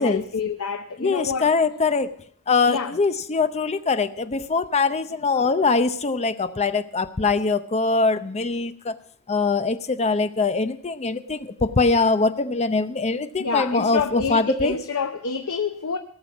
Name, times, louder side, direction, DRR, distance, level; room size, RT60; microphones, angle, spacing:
voice 1, 0.0-1.5 2.7-2.9 13.4-16.0, left 5 dB, 80° left, 0.8 m, -27 dB
voice 2, 1.0-2.1 2.5-8.9 9.3-14.7, left 4 dB, 30° left, 0.7 m, -22 dB
17.5 x 6.9 x 6.0 m
head